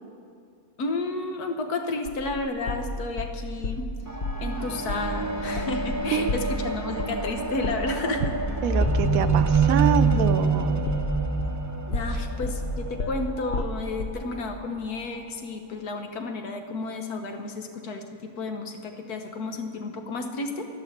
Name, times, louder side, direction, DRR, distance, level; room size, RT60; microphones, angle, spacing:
voice 1, 0.8-3.9 4.4-8.3 11.9-20.6, left 3 dB, 90° left, 5 dB, 1.6 m, -32 dB
sound 1, 2.0-3.9 4.2-4.5 4.9-5.1 5.4-11.6 11.9-14.2, left 2 dB, 55° left, 0.9 m, -32 dB
sound 2, 4.1-13.6 14.4-14.5, right 3 dB, 20° right, 0.5 m, -26 dB
voice 2, 8.6-10.9 12.1-12.2, right 10 dB, 75° right, 12 dB, 1.0 m, -26 dB
11.5 x 11.5 x 7.2 m, 2.4 s
omnidirectional pair, 1.6 m